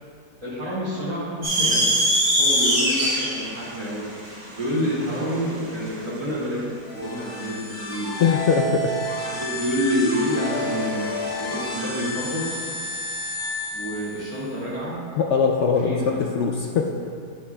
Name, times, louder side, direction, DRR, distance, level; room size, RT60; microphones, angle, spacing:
voice 1, 0.4-1.9 2.4-4.0 4.6-8.1 9.3-11.1 11.4-12.5 13.7-15.0 15.8-16.3, equal, 20° right, -7 dB, 2.2 m, -28 dB
sound 1, 1.4-5.9, equal, 80° right, 3.2 m, -22 dB
sound 2, 6.8-14.4, left 1 dB, 30° left, 2.0 m, -31 dB
voice 2, 8.2-9.0 15.2-16.9, left 6 dB, 80° left, 1 dB, 0.6 m, -21 dB
17.5 x 6.2 x 2.2 m, 2.2 s
omnidirectional pair, 1.8 m